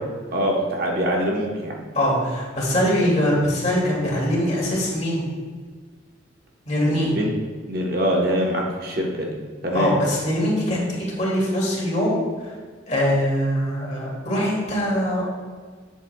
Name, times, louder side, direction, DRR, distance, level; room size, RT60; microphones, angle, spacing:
voice 1, 0.3-1.8 3.0-3.1 6.9-7.3 7.7-9.3 9.6-9.9, equal, 50° right, -1 dB, 1.0 m, -24 dB
voice 2, 1.9-5.2 6.7-7.2 9.7-12.6 12.9-15.2, equal, 35° left, -4 dB, 2.3 m, -22 dB
11.0 x 7.3 x 2.3 m, 1.5 s
head